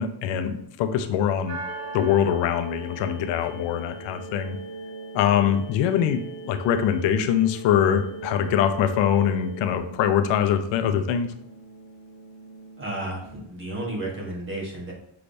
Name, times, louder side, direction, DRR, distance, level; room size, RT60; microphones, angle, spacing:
voice 1, 0.0-1.6 1.9-4.6 5.1-11.3, left 9 dB, 80° left, 8 dB, 0.6 m, -23 dB
sound 1, 1.5-13.5, right 3 dB, 85° right, 1.3 m, -43 dB
sound 2, 1.7-9.8, right 3 dB, 30° left, 0.4 m, -41 dB
voice 2, 12.8-14.9, right 1 dB, 30° right, -2 dB, 1.2 m, -32 dB
5.8 x 3.3 x 2.6 m, 0.76 s
cardioid pair, 170°, 44 cm